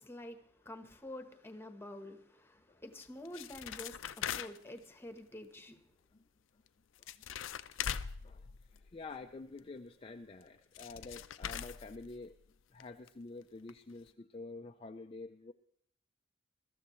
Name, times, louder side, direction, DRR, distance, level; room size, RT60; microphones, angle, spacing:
voice 1, 0.0-5.8, left 1 dB, 10° left, 1.1 m, -48 dB
sound 1, 3.0-4.8 6.7-6.8 7.0-9.2 10.4-10.5 10.7-12.5 12.8-12.9 13.1-13.2 13.7-13.8 14.1-14.2, left 8 dB, 85° left, 0.5 m, -41 dB
voice 2, 7.8-12.3 12.7-15.5, left 3 dB, 30° left, 0.4 m, -49 dB
22.0 x 13.5 x 3.1 m
head